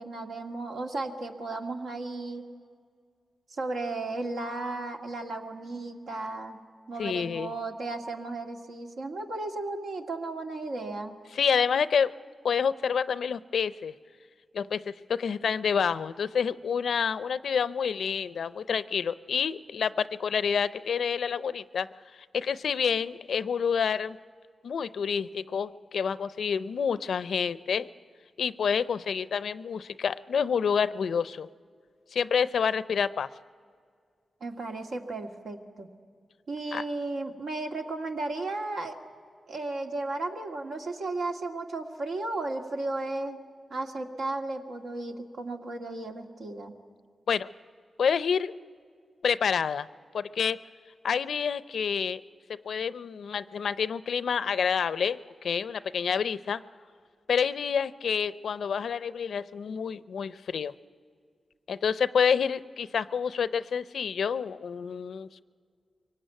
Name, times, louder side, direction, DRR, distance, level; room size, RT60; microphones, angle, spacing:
voice 1, 0.0-2.5 3.5-6.6 6.9-11.2 34.4-35.9 36.5-39.0 39.5-46.7, right 2 dB, 80° right, 2 dB, 2.0 m, -34 dB
voice 2, 7.0-7.5 11.3-12.1 12.4-13.9 14.5-21.9 22.3-24.2 24.6-27.9 28.4-31.5 32.1-33.3 36.7-36.8 47.3-47.5 48.0-48.5 49.2-49.9 50.1-50.6 51.0-52.2 52.5-56.6 57.3-60.7 61.7-65.4, left 6 dB, 80° left, 16 dB, 0.5 m, -28 dB
23.5 x 18.0 x 9.1 m, 2.1 s
cardioid pair, 65°, 0 cm